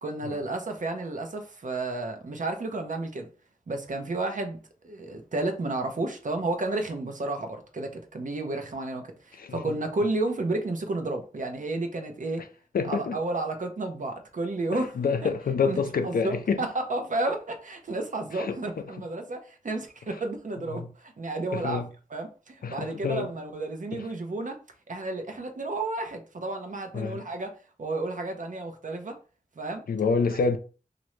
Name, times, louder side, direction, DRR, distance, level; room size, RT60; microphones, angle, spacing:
voice 1, 0.0-3.3 3.7-4.6 4.8-12.5 12.8-15.3 15.7-21.8 22.1-24.6 24.9-27.5 27.8-29.2 29.6-29.9, right 2 dB, 65° right, 0.6 m, -32 dB
voice 2, 9.4-9.7 12.7-13.2 15.0-16.7 18.3-18.6 20.7-20.9 21.5-21.9 22.6-23.3 23.9-24.0 26.9-27.2 29.9-30.6, left 5 dB, 85° left, 0.4 m, -27 dB
3.1 x 2.5 x 3.0 m
wide cardioid pair, 60°, 15 cm